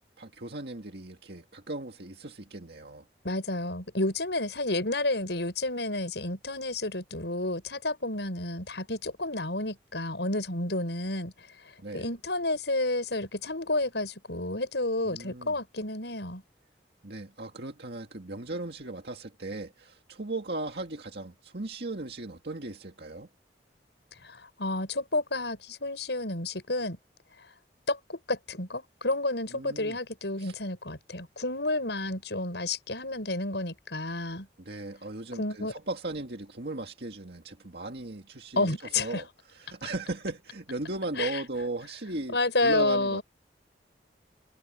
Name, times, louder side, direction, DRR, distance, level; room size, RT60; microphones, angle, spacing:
voice 1, 0.2-3.1 11.8-12.1 15.1-15.6 17.0-23.3 29.5-30.0 30.4-30.6 34.6-42.4 42.6-43.2, right 2 dB, 65° right, 2.0 m, -37 dB
voice 2, 3.2-11.3 11.9-16.4 24.2-27.0 27.9-34.5 35.4-35.7 38.6-39.2 41.2-41.4 42.3-43.2, left 2 dB, 75° left, 6.2 m, -30 dB
head